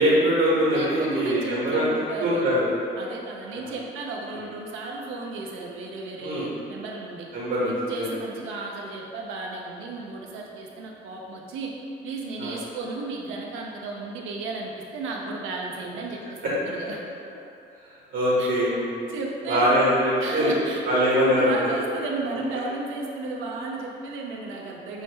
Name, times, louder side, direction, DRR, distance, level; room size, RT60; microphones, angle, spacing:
voice 1, 0.0-1.9 2.2-2.6 3.5-3.7 6.2-6.5 7.3-8.1 12.4-12.5 16.4-16.5 18.1-18.9 19.5-20.5 20.9-21.5, equal, 75° right, -8 dB, 1.1 m, -22 dB
voice 2, 0.7-2.6 3.0-7.3 7.7-11.7 12.0-17.0 18.4-18.5 19.1-19.7 20.2-25.0, right 3 dB, 90° right, -1 dB, 0.6 m, -34 dB
6.2 x 2.1 x 3.1 m, 2.6 s
cardioid pair, 90°, 20 cm